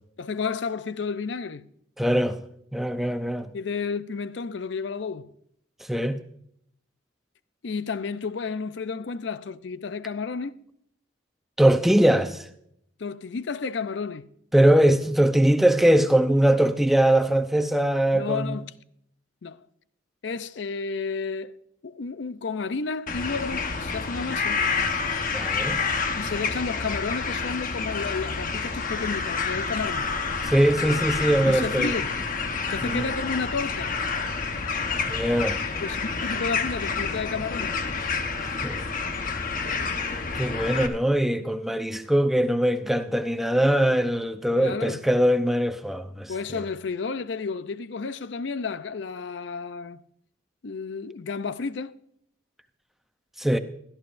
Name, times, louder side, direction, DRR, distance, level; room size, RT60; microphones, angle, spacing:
voice 1, 0.2-1.7 3.5-5.3 7.6-10.6 13.0-14.3 18.1-18.7 19.4-19.6 20.2-21.6 21.8-24.6 26.1-30.1 31.5-32.1 32.7-33.9 35.8-37.8 44.6-45.0 46.3-50.0 50.6-52.0, left 4 dB, 65° left, 0.5 m, -31 dB
voice 2, 2.0-2.4 2.7-3.5 5.9-6.2 11.6-12.5 14.5-18.6 25.3-25.8 30.4-31.9 32.8-33.0 35.1-35.6 38.6-38.8 40.3-46.6 53.4-53.6, right 1 dB, ahead, 0.6 m, -21 dB
sound 1, 23.1-40.9, left 4 dB, 45° left, 1.1 m, -28 dB
16.5 x 13.0 x 2.6 m
head